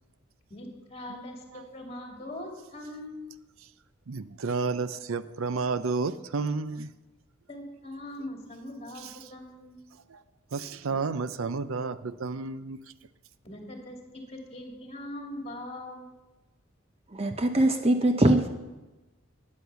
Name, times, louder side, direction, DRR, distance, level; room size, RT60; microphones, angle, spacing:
voice 1, 0.5-3.3 7.5-9.8 13.4-16.1, left 1 dB, 30° left, 1 dB, 2.6 m, -41 dB
voice 2, 4.1-6.9 9.0-9.1 10.1-10.2 10.5-12.8, right 4 dB, 80° right, 14 dB, 0.6 m, -31 dB
voice 3, 17.1-18.5, right 1 dB, 30° right, 6 dB, 0.7 m, -22 dB
13.0 x 9.8 x 6.9 m, 1.1 s
head